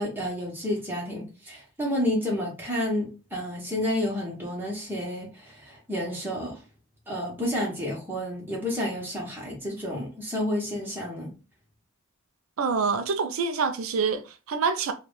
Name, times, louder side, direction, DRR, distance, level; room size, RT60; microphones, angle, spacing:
voice 1, 0.0-6.6 7.1-11.3, left 1 dB, 10° right, 1.1 m, -30 dB
voice 2, 12.6-14.9, right 5 dB, 80° right, 0.4 m, -26 dB
3.0 x 2.4 x 3.7 m
head